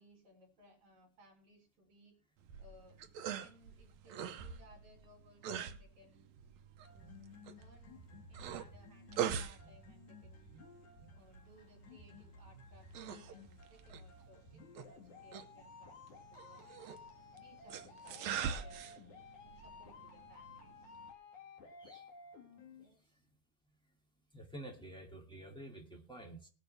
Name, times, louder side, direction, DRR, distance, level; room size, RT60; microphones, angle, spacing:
voice 1, 0.0-2.2 2.6-3.0 3.4-6.4 6.9-7.3 7.6-10.6 11.1-16.8 17.4-18.9 19.4-20.9 22.8-23.2, left 1 dB, 40° right, 0 dB, 5.1 m, -64 dB
sound 1, 2.4-21.1, right 8 dB, 75° right, 1.6 m, -45 dB
sound 2, 6.8-22.8, left 4 dB, 55° left, 3.2 m, -56 dB
voice 2, 24.3-26.5, right 1 dB, ahead, 0 dB, 1.3 m, -49 dB
19.5 x 8.9 x 3.4 m, 0.37 s
omnidirectional pair, 4.3 m